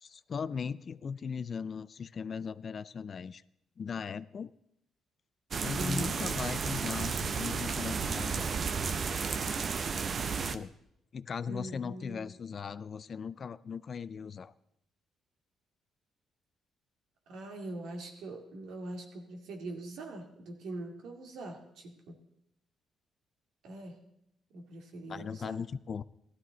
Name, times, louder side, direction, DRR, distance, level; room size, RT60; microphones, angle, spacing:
voice 1, 0.0-3.4 3.8-4.5 5.6-8.7 10.4-10.7 11.1-14.5 25.1-26.0, left 6 dB, 45° left, 16 dB, 0.4 m, -38 dB
sound 1, 5.5-10.6, right 5 dB, 45° right, 0.7 m, -33 dB
voice 2, 5.7-6.1 11.5-12.3 17.3-22.2 23.6-24.0 24.5-25.6, right 2 dB, 80° right, 3 dB, 2.2 m, -42 dB
16.0 x 12.5 x 3.9 m, 0.77 s
cardioid pair, 90°, 0 cm